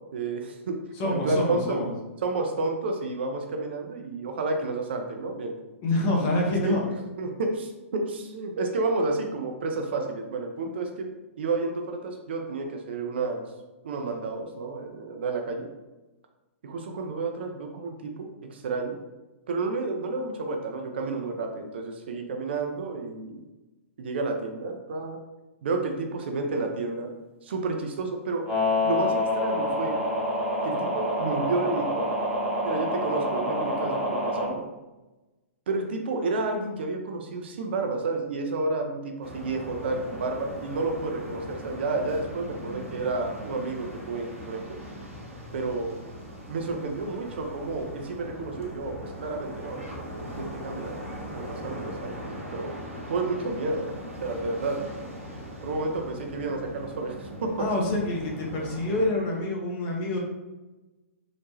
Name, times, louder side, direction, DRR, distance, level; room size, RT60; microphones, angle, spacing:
voice 1, 0.1-0.8 1.1-1.8 2.2-5.5 6.3-6.8 7.2-11.1 11.4-13.4 13.8-15.7 16.6-19.0 19.5-23.3 24.0-25.2 25.6-27.1 27.4-28.4 28.8-30.0 30.6-32.1 32.6-34.7 35.7-44.8 45.5-46.0 46.5-51.0 51.3-52.3 52.5-52.7 53.1-53.9 54.2-54.8 55.6-57.7, right 3 dB, 50° right, 3 dB, 0.4 m, -30 dB
voice 2, 1.0-1.9 5.8-6.8 57.6-60.2, left 1 dB, 30° left, -1 dB, 0.6 m, -26 dB
sound 1, 28.5-34.5, left 1 dB, 10° right, 0.8 m, -27 dB
sound 2, 39.2-59.1, equal, 75° right, 0.9 m, -40 dB
2.9 x 2.1 x 2.7 m, 1.1 s
figure-of-eight pair, 110°, 7 cm